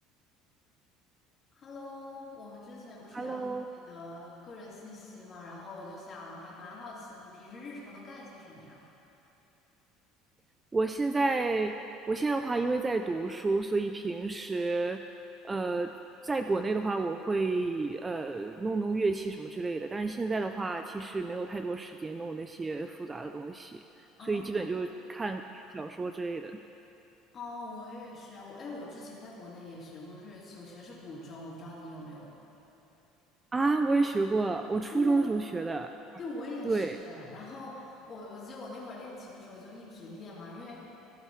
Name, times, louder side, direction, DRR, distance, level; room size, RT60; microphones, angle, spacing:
voice 1, 1.5-3.4 3.7-8.8 24.2-24.7 27.3-32.4 34.9-35.5 36.2-40.8, left 2 dB, 30° left, -6 dB, 2.8 m, -44 dB
voice 2, 3.1-3.7 10.7-11.8 12.1-15.0 15.4-15.9 16.2-23.8 24.2-26.6 33.5-36.0 36.6-37.0, right 3 dB, 15° right, 7 dB, 0.3 m, -30 dB
17.0 x 12.0 x 3.1 m, 2.9 s
cardioid pair, 150°, 0 cm